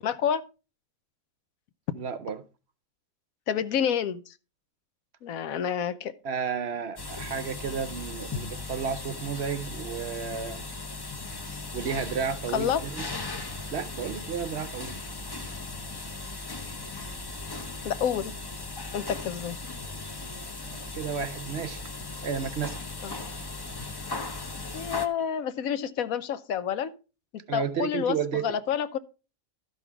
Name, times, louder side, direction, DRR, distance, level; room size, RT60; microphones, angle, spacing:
voice 1, 0.0-0.4 3.5-4.3 5.2-6.1 12.5-12.8 17.8-18.3 18.9-19.6 23.0-23.1 24.7-26.9 27.5-28.2 28.4-29.0, left 8 dB, 80° left, 1.2 m, -28 dB
voice 2, 1.9-2.5 6.2-10.7 11.7-13.1 13.7-15.0 20.6-21.8 22.2-22.8 27.5-28.6, right 7 dB, 60° right, 0.8 m, -32 dB
sound 1, 7.0-25.1, left 3 dB, 25° left, 0.5 m, -37 dB
12.5 x 5.7 x 4.5 m
omnidirectional pair, 1.5 m